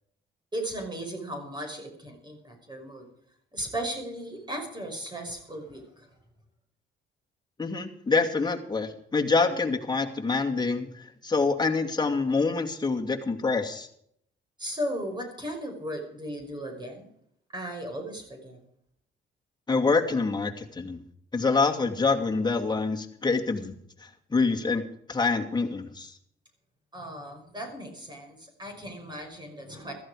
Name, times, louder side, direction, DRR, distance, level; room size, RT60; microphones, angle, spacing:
voice 1, 0.5-3.1 3.5-6.1 14.6-17.1 17.5-18.6 26.9-29.9, equal, 20° right, 3 dB, 5.7 m, -36 dB
voice 2, 7.6-10.9 11.2-13.9 19.7-21.0 21.3-23.8 24.3-24.8 25.1-26.1, left 4 dB, 20° left, 3 dB, 2.5 m, -26 dB
15.0 x 14.5 x 5.0 m, 0.66 s
cardioid pair, 90°, 20 cm